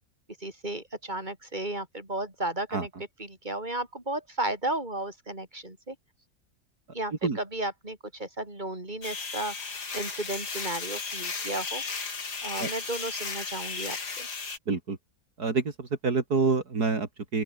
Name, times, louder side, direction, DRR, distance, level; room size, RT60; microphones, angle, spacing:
voice 1, 0.4-2.9 3.2-6.0 6.9-11.8 12.4-14.3, right 1 dB, 25° right, 6.1 m, -34 dB
sound 1, 9.0-14.6, left 4 dB, 80° left, 3.5 m, -35 dB
voice 2, 14.7-15.0 15.4-17.4, right 4 dB, 70° right, 3.5 m, -27 dB
open air
omnidirectional pair, 1.7 m